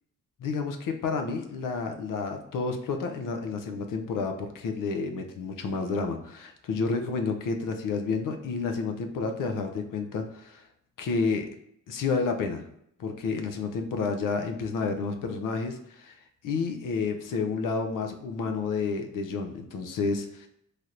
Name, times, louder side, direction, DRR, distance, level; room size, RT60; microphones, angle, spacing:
voice 1, 0.4-10.6 11.0-11.5 11.9-12.6 13.0-16.2 16.4-20.5, left 4 dB, 80° left, 5 dB, 0.5 m, -30 dB
3.3 x 2.8 x 2.4 m, 0.74 s
cardioid pair, 85°, 32 cm